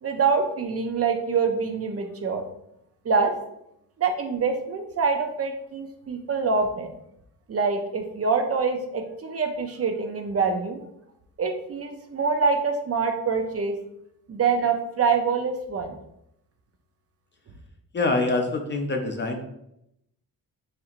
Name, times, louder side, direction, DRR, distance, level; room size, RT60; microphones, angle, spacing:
voice 1, 0.0-2.4 3.0-3.3 4.0-6.9 7.5-10.8 11.4-13.7 14.3-16.0, right 5 dB, 40° right, 4 dB, 0.5 m, -25 dB
voice 2, 17.9-19.5, left 2 dB, 30° left, 3 dB, 0.4 m, -25 dB
4.2 x 2.7 x 2.4 m, 0.78 s
wide cardioid pair, 115°, 36 cm